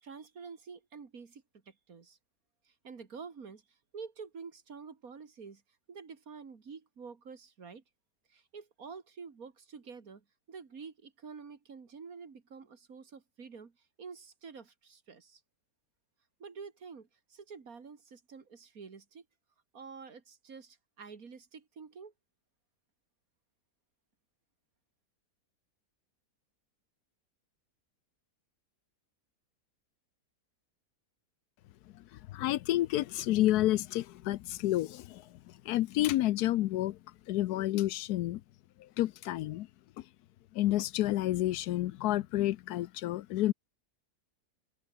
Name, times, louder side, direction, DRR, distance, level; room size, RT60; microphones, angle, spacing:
voice 1, 0.0-2.2 2.7-5.6 5.9-7.8 8.3-15.4 16.4-19.2 19.7-22.1, right 5 dB, 60° right, 2.4 m, -48 dB
voice 2, 31.9-37.0 37.3-38.4 38.8-39.7 40.0-40.1 40.5-43.5, left 15 dB, 75° left, 1.1 m, -30 dB
open air
omnidirectional pair, 1.7 m